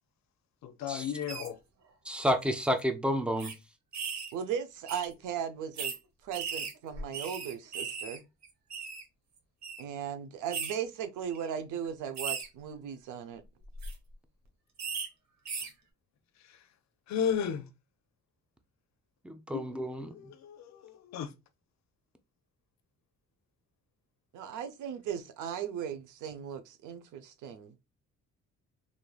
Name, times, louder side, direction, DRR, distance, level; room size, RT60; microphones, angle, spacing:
voice 1, 0.6-1.6 16.5-16.6 17.1-17.7 19.5-21.3, left 7 dB, 65° left, 0.5 m, -34 dB
sound 1, 1.3-1.5 2.3-2.4 2.7-2.8 3.4-3.5 3.9-4.3 4.9-5.1 5.8-6.0 6.3-8.2 8.4-9.0 9.6-9.8 10.5-10.7 11.3-11.5 12.2-12.5 13.6-13.9 14.8-15.1 15.5-15.7, right 5 dB, 65° right, 0.9 m, -37 dB
voice 2, 2.1-3.5 19.2-20.1, equal, 5° right, 0.5 m, -30 dB
voice 3, 4.3-5.9 6.2-8.2 9.8-13.4 24.3-27.8, right 8 dB, 85° right, 0.6 m, -37 dB
3.1 x 2.6 x 2.3 m
cardioid pair, 90°, 30 cm